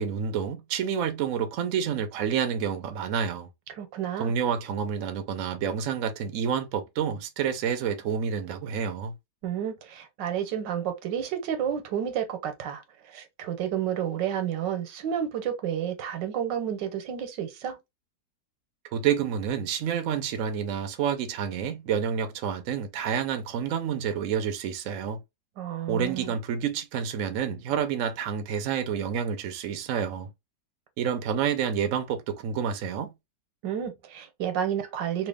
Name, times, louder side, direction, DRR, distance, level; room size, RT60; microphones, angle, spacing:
voice 1, 0.0-3.5 4.2-9.1 18.9-25.2 25.9-30.3 31.0-33.1, right 7 dB, 60° right, 0.9 m, -29 dB
voice 2, 3.8-4.3 9.4-12.8 13.1-17.8 25.6-26.3 33.6-35.3, right 9 dB, 85° right, 1.5 m, -31 dB
3.1 x 2.9 x 3.3 m
omnidirectional pair, 1.9 m